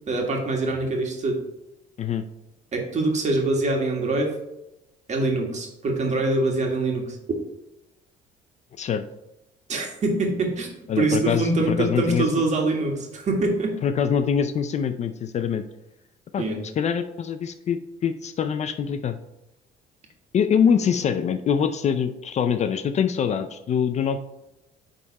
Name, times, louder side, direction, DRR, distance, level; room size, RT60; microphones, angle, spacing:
voice 1, 0.1-1.4 2.7-4.3 5.1-7.4 9.7-13.7 16.4-16.6, right 2 dB, 45° right, 1 dB, 1.8 m, -24 dB
voice 2, 10.9-12.3 13.8-15.6 16.3-19.2 20.3-24.2, left 7 dB, 45° left, 10 dB, 0.5 m, -24 dB
9.8 x 3.7 x 4.1 m, 0.90 s
cardioid pair, 110°, 17 cm